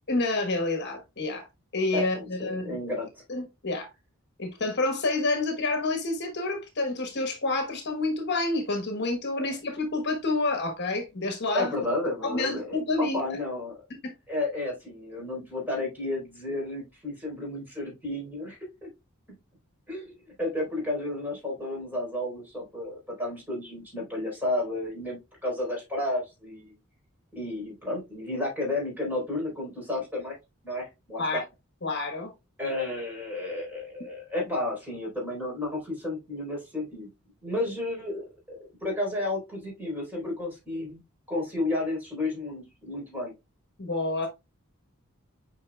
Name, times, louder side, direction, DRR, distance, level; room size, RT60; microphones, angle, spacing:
voice 1, 0.1-1.5 1.7-2.8 3.3-3.9 4.4-11.7 12.2-13.2 14.0-14.1 31.2-31.4 31.8-32.3 43.8-44.3, left 2 dB, 55° left, 1.3 m, -28 dB
voice 2, 1.9-3.2 9.4-9.5 11.5-13.7 14.3-18.9 19.9-26.7 27.3-30.4 30.6-31.4 32.6-37.1 37.4-41.0 41.3-43.3, left 2 dB, 10° right, 4.0 m, -32 dB
8.4 x 5.2 x 2.3 m
head